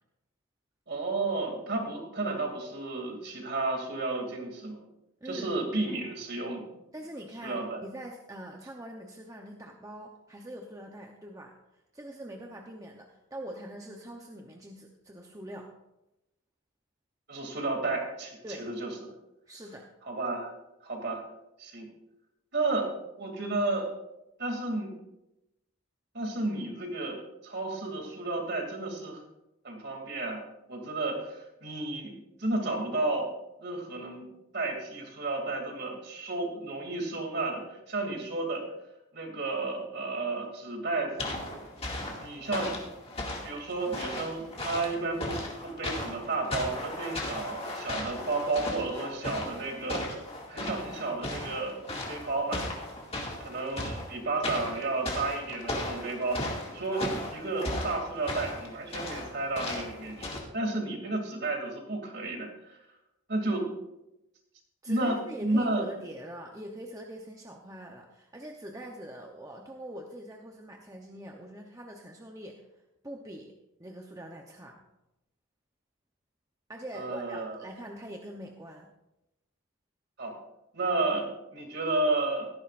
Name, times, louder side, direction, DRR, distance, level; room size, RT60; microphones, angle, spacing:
voice 1, 0.9-4.8 5.2-6.7 7.4-7.8 17.3-19.1 20.1-20.5 20.8-21.2 21.6-21.9 22.5-22.9 23.2-23.9 24.4-24.9 26.1-29.2 29.6-30.4 30.7-32.1 32.4-33.3 33.6-34.2 34.5-38.6 39.1-41.3 42.2-42.8 43.4-50.0 50.5-51.7 52.1-52.6 53.3-62.8 63.3-63.7 64.9-65.9 76.9-77.6 80.2-80.4 80.7-82.5, right 2 dB, 50° right, 2 dB, 2.7 m, -32 dB
voice 2, 6.9-15.7 18.4-18.7 19.5-19.9 64.8-72.6 73.0-73.5 73.8-74.8 76.7-78.9, right 1 dB, 15° right, 1 dB, 0.8 m, -43 dB
sound 1, 41.2-60.4, left 1 dB, 30° left, 2.2 m, -37 dB
16.5 x 13.5 x 2.5 m, 0.91 s
head